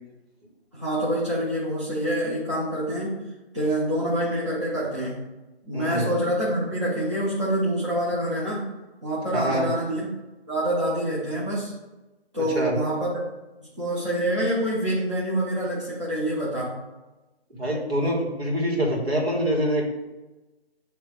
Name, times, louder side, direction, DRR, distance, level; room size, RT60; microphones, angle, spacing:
voice 1, 0.7-3.2 3.5-5.3 5.6-8.7 9.0-10.1 10.5-11.7 12.3-13.2 13.8-16.8, right 1 dB, 30° right, -9 dB, 1.2 m, -26 dB
voice 2, 5.7-6.2 9.3-9.7 12.4-12.7 17.5-19.9, equal, 65° right, -2 dB, 2.1 m, -25 dB
6.6 x 3.2 x 4.8 m, 1.1 s
figure-of-eight pair, 180°, 33 cm